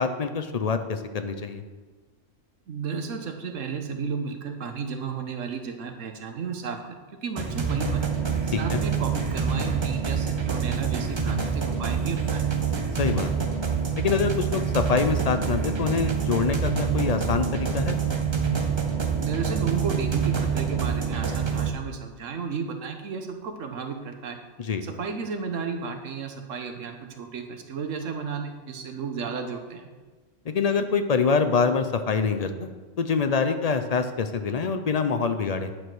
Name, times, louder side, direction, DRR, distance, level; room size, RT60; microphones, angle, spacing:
voice 1, 0.0-1.6 8.5-8.8 13.0-13.3 14.0-18.0 24.6-24.8 30.5-32.7 33.0-35.7, left 5 dB, 50° left, 8 dB, 0.5 m, -25 dB
voice 2, 2.7-12.5 19.2-24.4 24.8-29.9, right 5 dB, 80° right, 6 dB, 1.3 m, -33 dB
sound 1, 7.4-21.7, right 6 dB, 25° right, 0.7 m, -26 dB
9.6 x 4.8 x 6.1 m, 1.3 s
omnidirectional pair, 1.3 m